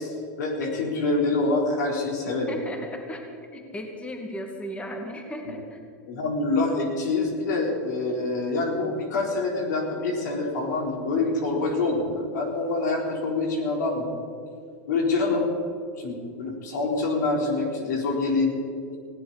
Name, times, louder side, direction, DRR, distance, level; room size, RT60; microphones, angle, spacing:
voice 1, 0.0-2.5 5.4-5.5 6.1-14.1 14.9-15.5 16.0-18.6, left 3 dB, 85° left, 1 dB, 3.9 m, -26 dB
voice 2, 2.5-5.8, equal, 15° left, 3 dB, 2.1 m, -36 dB
19.5 x 16.5 x 4.1 m, 2.5 s
supercardioid pair, 125°, 9 cm